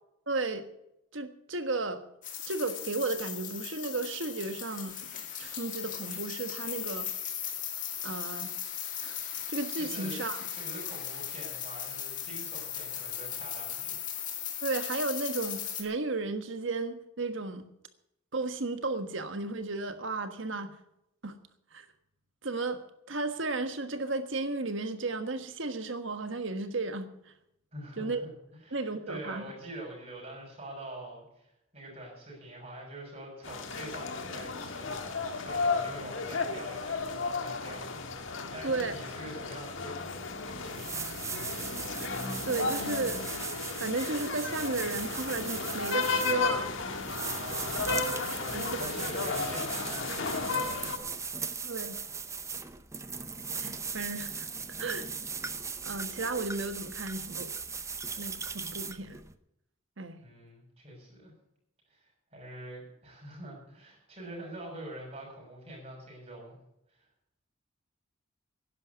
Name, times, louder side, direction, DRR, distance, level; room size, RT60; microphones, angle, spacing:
voice 1, 0.3-0.6 1.1-2.0 2.5-4.9 5.4-7.1 8.0-8.5 9.0-10.5 14.6-17.6 18.3-20.7 21.2-21.3 21.7-21.9 22.4-27.3 28.0-28.3 28.7-29.5 38.6-39.0 42.5-43.2 43.7-46.7 48.5-48.9 51.6-52.0 53.5-54.5 54.8-55.1 55.8-57.5 58.2-59.2 60.0-60.2, right 3 dB, 65° right, 8 dB, 1.4 m, -34 dB
sound 1, 2.2-15.8, left 9 dB, 40° left, 2.3 m, -37 dB
voice 2, 9.8-10.2 10.5-14.0 27.7-28.3 28.6-37.9 38.4-41.0 47.2-50.6 60.2-61.3 61.9-66.6 66.9-67.0, right 1 dB, 30° right, -1 dB, 6.6 m, -45 dB
sound 2, 33.4-51.0, left 4 dB, 70° left, 1.6 m, -34 dB
sound 3, 40.2-40.3 40.7-59.3, right 5 dB, 15° right, 0.6 m, -38 dB
11.0 x 11.0 x 8.2 m, 0.81 s
head